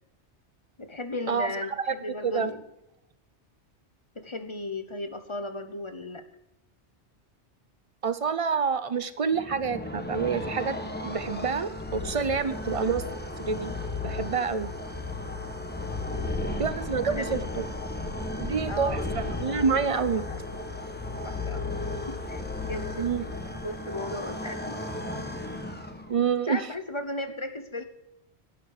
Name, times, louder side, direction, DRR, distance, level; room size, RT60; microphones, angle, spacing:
voice 1, 0.8-2.6 4.1-6.2 16.1-16.3 17.1-17.4 18.7-19.2 19.9-20.4 21.2-21.6 22.1-23.2 23.6-24.8 26.4-27.8, left 2 dB, 30° left, 9 dB, 0.9 m, -36 dB
voice 2, 8.0-10.8 11.0-13.0 13.4-13.7 14.0-14.7 16.6-17.6 18.4-20.2 23.0-23.2 26.1-26.6, right 6 dB, 40° right, 13 dB, 0.5 m, -27 dB
sound 1, 9.3-26.3, left 2 dB, 10° left, 1.1 m, -34 dB
11.5 x 9.9 x 4.9 m, 0.84 s
omnidirectional pair, 1.2 m